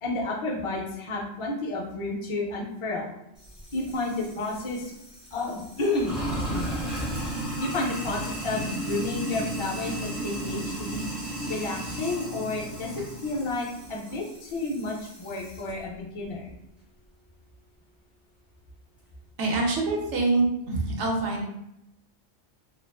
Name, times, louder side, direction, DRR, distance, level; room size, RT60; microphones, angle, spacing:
voice 1, 0.0-3.1 3.7-4.9 5.3-6.7 7.6-11.1 11.5-12.9 13.2-16.5, left 2 dB, 50° left, -2 dB, 0.3 m, -31 dB
Sink (filling or washing), 3.4-15.7, right 1 dB, ahead, 0.5 m, -35 dB
voice 2, 19.4-21.4, right 3 dB, 80° right, -1 dB, 0.9 m, -25 dB
2.4 x 2.3 x 2.2 m, 0.83 s
omnidirectional pair, 1.2 m